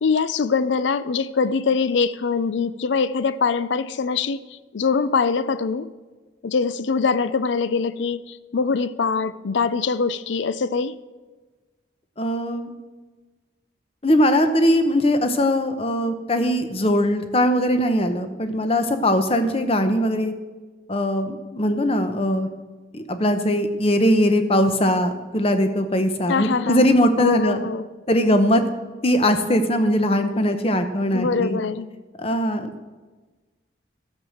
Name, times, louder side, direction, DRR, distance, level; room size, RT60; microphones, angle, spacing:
voice 1, 0.0-5.9 6.4-11.0 26.3-27.9 31.1-31.9, left 5 dB, 70° left, 15 dB, 0.5 m, -23 dB
voice 2, 12.2-12.7 14.0-20.3 20.9-22.5 22.9-27.6 28.1-28.6 29.0-31.6 32.2-32.8, equal, 30° left, 8 dB, 0.8 m, -20 dB
12.5 x 7.3 x 6.4 m, 1.3 s
head